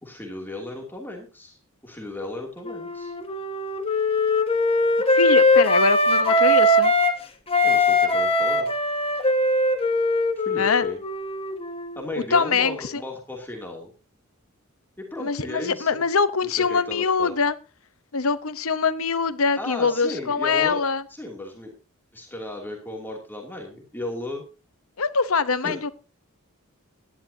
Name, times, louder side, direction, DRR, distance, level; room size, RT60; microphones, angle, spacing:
voice 1, 0.0-3.1 7.6-8.7 10.4-11.0 12.0-13.9 15.0-16.0 16.6-17.4 19.6-20.8 21.1-21.7 22.1-24.4 25.6-25.8, left 1 dB, 10° left, 0 dB, 2.8 m, -35 dB
Wind instrument woodwind instrument, 2.6-7.2 7.5-12.0, left 1 dB, 25° left, 1.5 m, -21 dB
voice 2, 5.1-6.9 10.6-10.8 12.3-13.0 15.2-17.5 18.1-21.0 25.0-25.9, left 5 dB, 70° left, 13 dB, 0.9 m, -23 dB
17.5 x 11.5 x 2.8 m, 0.31 s
head